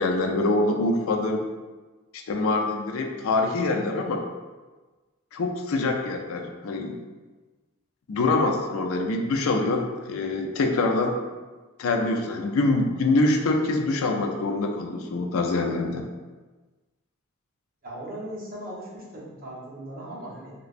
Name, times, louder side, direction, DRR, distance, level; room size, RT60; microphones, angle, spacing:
voice 1, 0.0-1.4 2.3-4.2 5.3-7.0 8.1-11.2 11.8-16.0, left 2 dB, 75° left, 3 dB, 0.4 m, -25 dB
voice 2, 17.8-20.5, right 1 dB, 40° right, -6 dB, 0.9 m, -38 dB
3.3 x 3.0 x 2.5 m, 1.3 s
head